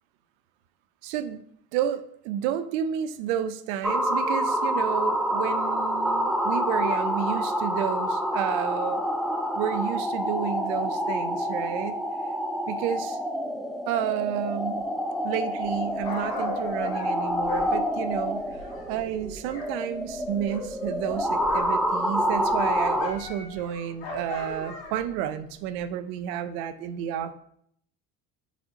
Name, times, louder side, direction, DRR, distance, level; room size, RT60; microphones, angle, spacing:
voice 1, 1.0-1.4 1.7-9.1 9.5-12.0 12.7-13.2 13.9-14.9 15.2-18.6 18.9-27.3, right 10 dB, 80° right, 12 dB, 0.6 m, -31 dB
sound 1, 3.8-23.1, equal, ahead, 0.3 m, -27 dB
Dog, 15.6-19.7 20.0-21.9 22.2-25.1 25.8-25.9, left 2 dB, 70° left, 1.7 m, -39 dB
4.2 x 4.1 x 2.8 m, 0.68 s
hypercardioid pair, 65°, 43 cm